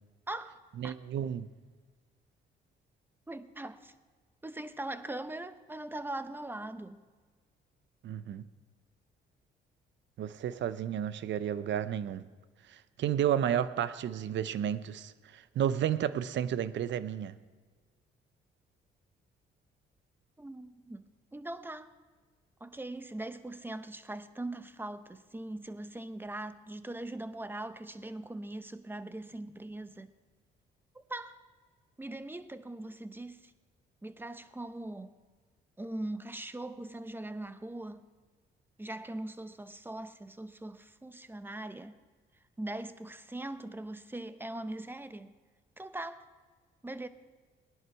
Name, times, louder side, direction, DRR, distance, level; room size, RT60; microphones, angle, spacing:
voice 1, 0.3-0.9 3.3-3.9 4.4-7.0 20.4-21.0 21.3-21.9 22.6-30.1 30.9-31.4 32.0-33.5 34.0-35.1 35.8-38.0 38.8-42.0 42.6-45.3 45.8-46.2 46.8-47.1, right 1 dB, 10° right, 0.8 m, -41 dB
voice 2, 0.8-1.5 8.0-8.4 10.2-12.2 12.7-17.3, right 10 dB, 65° right, 0.7 m, -32 dB
19.5 x 11.0 x 4.6 m
cardioid pair, 90°, 20 cm